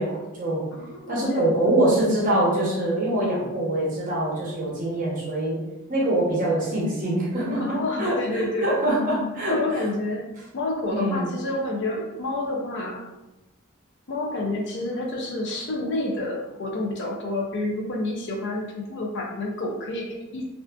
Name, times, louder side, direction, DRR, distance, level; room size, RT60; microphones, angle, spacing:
voice 1, 0.0-0.7 1.1-5.6 5.9-9.9 10.9-11.3, right 1 dB, 40° right, -5 dB, 0.7 m, -24 dB
voice 2, 0.7-1.5 7.6-8.8 9.5-10.3 10.5-13.0 14.1-20.4, left 2 dB, 55° left, 0 dB, 0.4 m, -29 dB
2.4 x 2.4 x 2.2 m, 0.99 s
head